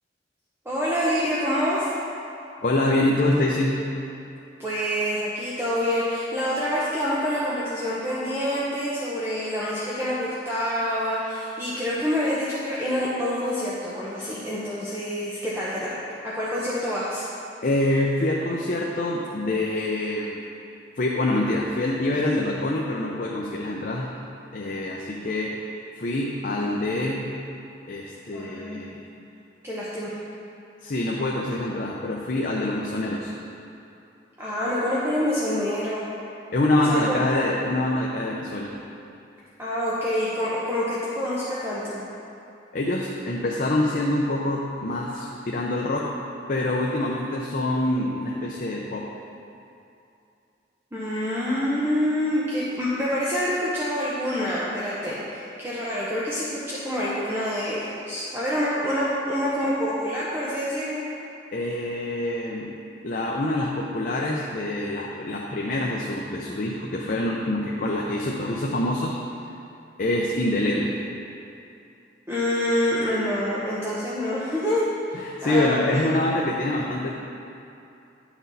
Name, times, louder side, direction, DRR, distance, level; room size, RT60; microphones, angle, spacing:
voice 1, 0.6-1.9 4.6-15.9 16.2-17.3 28.3-28.9 29.6-30.2 34.4-36.1 36.9-37.2 39.6-42.0 50.9-61.0 72.3-74.8 75.1-76.1, equal, 15° right, -8 dB, 0.9 m, -27 dB
voice 2, 2.6-3.8 17.6-20.5 21.0-24.1 24.5-25.7 26.0-27.3 27.9-29.0 30.8-33.3 36.5-38.8 42.7-46.2 46.5-49.1 61.5-62.7 63.0-69.1 70.0-71.0 75.1-77.1, left 1 dB, 50° left, -2 dB, 0.6 m, -25 dB
10.5 x 6.1 x 4.1 m, 2.7 s
head